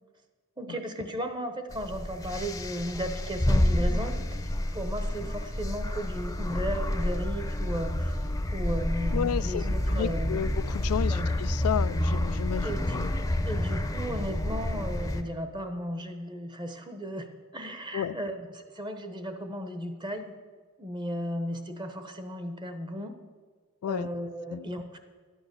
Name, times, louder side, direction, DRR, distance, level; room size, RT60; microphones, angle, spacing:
voice 1, 0.6-4.4 4.7-8.2 8.5-10.5 11.1-11.3 12.6-12.8 13.4-20.3 20.8-23.1 23.9-25.0, equal, 20° right, 0.9 m, -35 dB
sound 1, 1.7-15.2, left 1 dB, 15° left, 0.7 m, -29 dB
voice 2, 9.1-13.1 17.9-18.2 23.8-24.1 24.5-24.7, left 9 dB, 85° left, 0.3 m, -32 dB
12.0 x 9.0 x 6.7 m
head